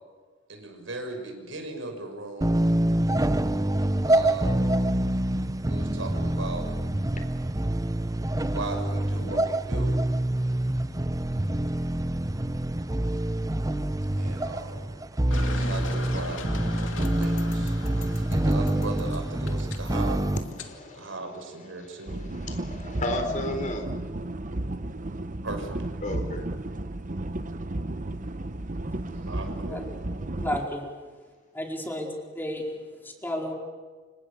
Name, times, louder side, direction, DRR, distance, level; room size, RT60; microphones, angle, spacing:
voice 1, 0.5-2.7 4.0-4.7 5.7-6.7 8.5-10.0 14.2-14.9 15.2-20.2 20.9-22.2 25.4-25.8 29.2-29.8, right 2 dB, 80° right, 4 dB, 6.1 m, -38 dB
sound 1, 2.4-20.4, right 1 dB, 20° right, 0.8 m, -26 dB
sound 2, 15.3-20.7, left 3 dB, 75° left, 2.7 m, -40 dB
voice 2, 20.6-21.1 22.5-23.9 26.0-26.5, left 1 dB, 40° left, 6 dB, 4.1 m, -32 dB
sound 3, 22.1-30.7, right 1 dB, 40° right, 1.0 m, -33 dB
voice 3, 30.4-30.8 31.5-32.1 32.3-32.6 33.0-33.5, left 1 dB, 10° left, 0 dB, 4.7 m, -31 dB
29.0 x 27.0 x 7.0 m, 1.4 s
head